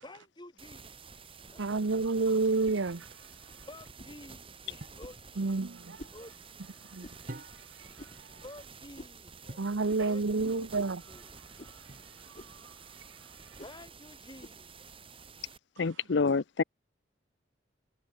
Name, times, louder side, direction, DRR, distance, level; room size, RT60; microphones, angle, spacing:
voice 1, 0.0-1.2 1.5-2.0 3.6-5.6 5.8-7.1 8.4-9.6 10.0-11.3 13.6-14.9, left 1 dB, 25° left, 2.6 m, -51 dB
sound 1, 0.6-15.6, right 5 dB, 30° right, 6.6 m, -51 dB
voice 2, 1.6-3.1 5.4-6.0 6.9-7.1 9.6-11.0, right 3 dB, 85° right, 0.8 m, -29 dB
sound 2, 2.6-2.8 4.0-4.2 5.0-5.2 6.0-6.2 7.0-7.2 8.0-8.2 9.0-9.2 9.9-10.1 10.8-11.0 11.6-11.8 12.3-12.6 13.6-13.8 14.4-14.6, left 1 dB, 40° left, 3.2 m, -50 dB
sound 3, 4.8-5.1 7.3-7.9 9.5-9.8 11.9-12.4, right 1 dB, 45° right, 1.6 m, -46 dB
voice 3, 15.8-16.6, left 4 dB, 70° left, 0.6 m, -27 dB
head